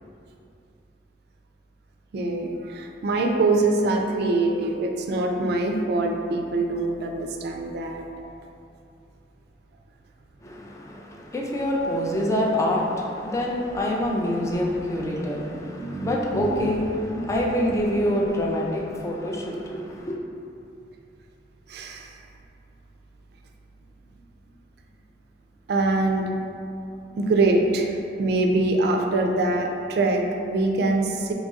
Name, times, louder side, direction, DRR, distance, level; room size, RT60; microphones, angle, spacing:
voice 1, 2.1-8.4 15.5-16.7 17.1-17.4 21.7-22.1 25.7-26.3 27.2-31.3, right 2 dB, 60° right, 3 dB, 0.3 m, -24 dB
voice 2, 10.4-20.2, left 1 dB, 15° left, -2 dB, 0.3 m, -26 dB
3.9 x 3.0 x 2.3 m, 2.5 s
head